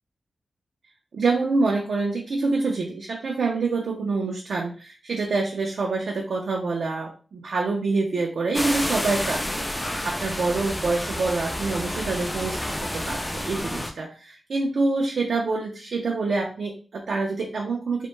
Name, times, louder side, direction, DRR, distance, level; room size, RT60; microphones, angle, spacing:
voice 1, 1.1-18.1, right 3 dB, 75° right, 0 dB, 0.3 m, -26 dB
sound 1, 8.5-13.9, left 1 dB, 15° left, 0.3 m, -29 dB
2.1 x 2.0 x 3.0 m, 0.38 s
cardioid pair, 65°, 0 cm